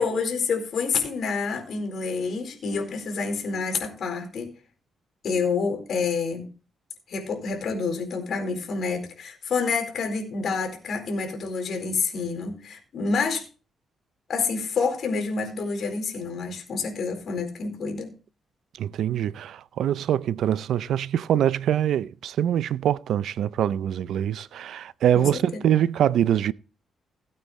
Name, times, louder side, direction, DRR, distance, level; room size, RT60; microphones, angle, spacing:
voice 1, 0.0-4.5 5.2-6.5 7.1-13.4 14.3-18.1 25.1-25.6, left 4 dB, 60° left, 4.3 m, -28 dB
voice 2, 18.8-26.5, right 10 dB, 75° right, 0.5 m, -24 dB
17.5 x 8.8 x 3.1 m
cardioid pair, 125°, 0 cm